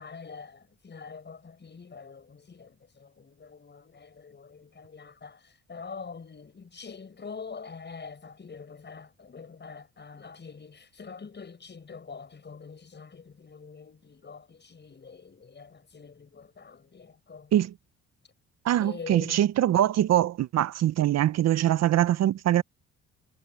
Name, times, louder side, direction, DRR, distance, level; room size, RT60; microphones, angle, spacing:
voice 1, 0.0-17.5 18.8-19.5, left 5 dB, 35° left, 7.5 m, -45 dB
voice 2, 18.6-22.6, right 12 dB, 60° right, 0.6 m, -23 dB
cardioid pair, 90°, 30 cm